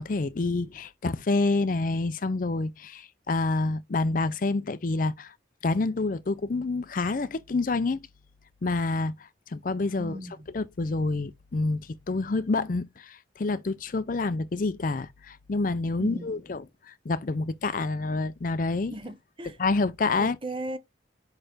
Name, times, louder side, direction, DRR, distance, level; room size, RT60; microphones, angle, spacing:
voice 1, 0.0-5.3 5.6-8.0 8.6-10.2 10.5-18.9 19.6-20.4, left 3 dB, 45° left, 0.5 m, -28 dB
voice 2, 10.0-10.5 16.0-16.4 18.9-19.6 20.2-20.8, right 1 dB, 25° right, 0.7 m, -37 dB
5.7 x 4.4 x 4.9 m
head